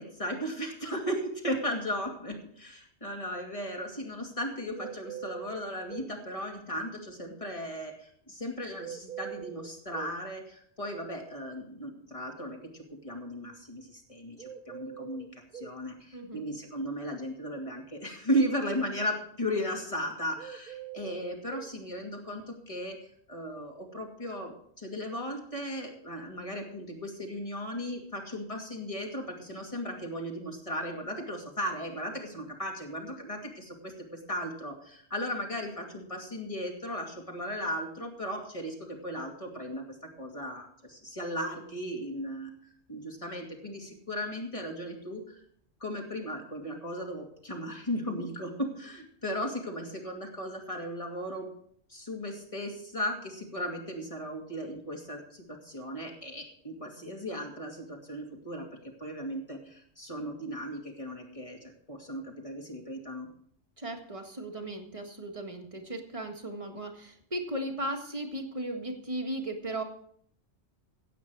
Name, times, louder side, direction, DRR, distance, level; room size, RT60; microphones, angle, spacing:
voice 1, 0.0-42.5 42.9-45.4 45.8-51.5 51.9-63.3, equal, 30° left, 1 dB, 2.5 m, -36 dB
sound 1, 4.7-6.2 8.8-10.2 14.4-15.8 20.4-21.7, right 9 dB, 50° right, 0.7 m, -43 dB
voice 2, 16.1-16.4 63.8-69.8, right 1 dB, 30° right, 3 dB, 1.8 m, -36 dB
16.0 x 8.6 x 4.7 m, 0.64 s
omnidirectional pair, 1.2 m